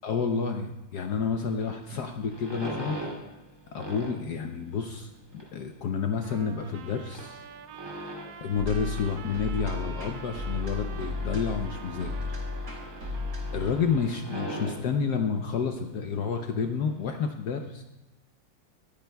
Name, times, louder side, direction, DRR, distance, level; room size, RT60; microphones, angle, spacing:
voice 1, 0.0-3.0 3.7-7.4 8.4-12.5 13.5-17.8, left 6 dB, 70° left, 5 dB, 0.9 m, -30 dB
sound 1, 1.4-17.2, right 1 dB, 10° right, 2.3 m, -42 dB
Trumpet, 6.2-14.0, right 8 dB, 90° right, 0.8 m, -47 dB
sound 2, 8.6-13.7, left 3 dB, 45° right, 4.1 m, -34 dB
24.0 x 8.6 x 2.3 m, 1.0 s
omnidirectional pair, 2.4 m